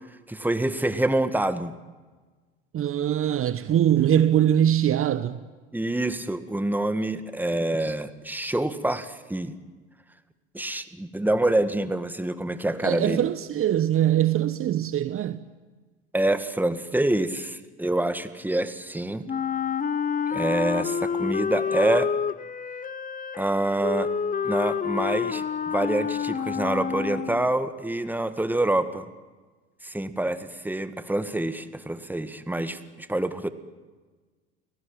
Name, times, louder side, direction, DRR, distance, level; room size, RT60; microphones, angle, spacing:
voice 1, 0.3-1.7 5.7-9.5 10.5-13.3 16.1-19.3 20.3-22.1 23.4-24.1 24.4-29.0 29.8-33.5, right 1 dB, 5° right, 1.9 m, -26 dB
voice 2, 2.7-5.4 12.8-15.4, right 10 dB, 40° right, 1.1 m, -22 dB
Wind instrument woodwind instrument, 19.3-27.6, left 7 dB, 25° left, 1.0 m, -28 dB
29.5 x 18.0 x 9.1 m
hypercardioid pair, 70°, 34 cm